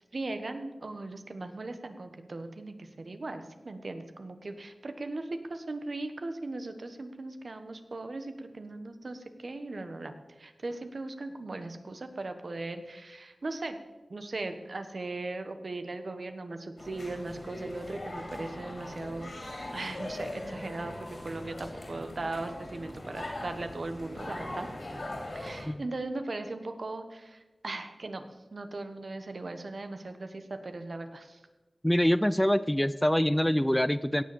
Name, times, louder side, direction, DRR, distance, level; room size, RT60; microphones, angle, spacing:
voice 1, 0.1-13.8 14.1-19.3 19.7-24.7 25.3-31.4, right 2 dB, 65° right, 8 dB, 1.3 m, -38 dB
sound 1, 16.8-25.6, left 1 dB, 65° left, 3.3 m, -40 dB
voice 2, 31.8-34.2, equal, 10° left, 15 dB, 0.4 m, -25 dB
17.0 x 6.8 x 7.3 m, 1.2 s
wide cardioid pair, 70°, 0 cm